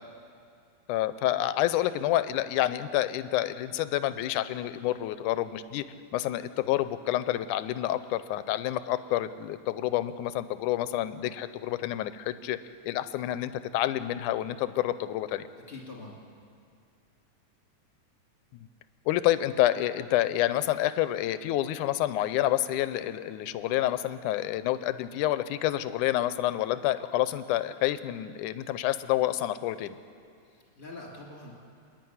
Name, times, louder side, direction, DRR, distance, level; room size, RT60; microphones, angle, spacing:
voice 1, 0.9-5.8 6.1-12.6 12.8-15.5 18.5-18.7 19.1-30.0, left 13 dB, 80° left, 13 dB, 2.1 m, -28 dB
voice 2, 15.7-16.2 30.4-31.5, left 2 dB, 20° left, -2 dB, 2.6 m, -44 dB
27.0 x 10.5 x 9.5 m, 2.3 s
omnidirectional pair, 3.6 m